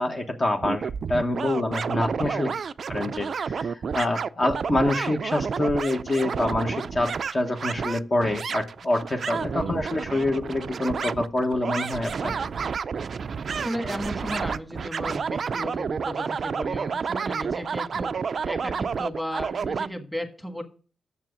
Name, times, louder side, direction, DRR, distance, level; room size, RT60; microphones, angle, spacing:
voice 1, 0.0-2.5 2.9-12.3, left 2 dB, 35° left, 3 dB, 1.0 m, -26 dB
sound 1, 0.6-19.9, right 6 dB, 55° right, 0.4 m, -30 dB
voice 2, 9.4-9.7 13.5-18.1 18.4-20.6, equal, 5° left, 5 dB, 1.5 m, -35 dB
7.3 x 6.9 x 6.2 m, 0.39 s
cardioid pair, 90°, 0 cm